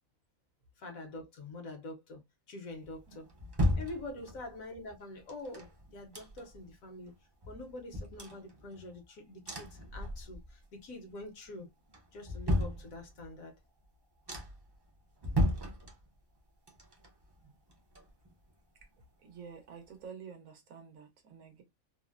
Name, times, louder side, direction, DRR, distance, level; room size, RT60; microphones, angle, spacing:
voice 1, 0.8-2.2 2.5-3.3 3.8-7.2 7.5-11.7 12.1-13.6, left 2 dB, 80° left, 1.4 m, -45 dB
sound 1, 2.8-4.6 5.3-6.7 7.1-7.2 7.4-9.0 9.4-10.6 10.9-11.4 11.9-13.4 13.8-13.9 14.3-14.7 15.2-16.4 16.7-18.5 18.8-18.9, left 1 dB, 25° right, 0.5 m, -35 dB
voice 2, 19.2-21.6, right 6 dB, 80° right, 1.3 m, -49 dB
3.6 x 2.0 x 2.4 m
omnidirectional pair, 1.4 m